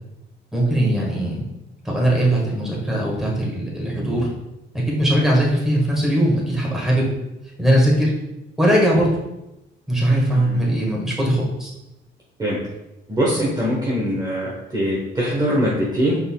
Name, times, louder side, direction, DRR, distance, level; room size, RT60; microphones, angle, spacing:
voice 1, 0.5-1.4 1.8-4.3 4.7-7.1 7.6-8.1 8.6-9.1 9.9-11.7, right 1 dB, ahead, -4 dB, 1.6 m, -20 dB
voice 2, 13.1-16.2, equal, 20° right, -6 dB, 1.1 m, -22 dB
5.3 x 4.0 x 2.3 m, 0.93 s
cardioid pair, 90°, 20 cm